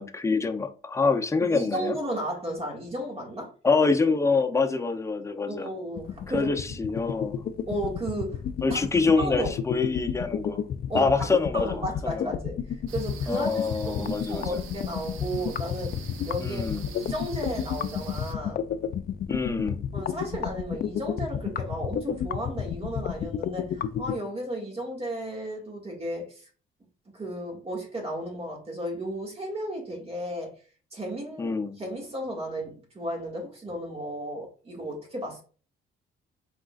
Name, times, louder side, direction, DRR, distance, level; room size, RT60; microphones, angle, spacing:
voice 1, 0.0-2.0 3.6-5.7 6.3-7.3 8.6-10.6 10.9-11.7 12.1-12.3 13.3-14.5 16.4-16.9 19.3-19.8 31.4-31.8, left 4 dB, 15° left, 0.6 m, -25 dB
voice 2, 1.4-3.5 5.5-7.0 7.7-8.4 8.7-8.8 9.2-9.6 10.9-11.3 11.5-18.7 19.9-26.5 27.1-30.5 30.9-35.4, right 1 dB, 30° right, 1.9 m, -34 dB
sound 1, 6.0-24.1, left 8 dB, 50° left, 0.4 m, -31 dB
sound 2, 12.9-18.3, right 8 dB, 85° right, 0.6 m, -44 dB
4.8 x 3.7 x 2.5 m
cardioid pair, 90°, 20 cm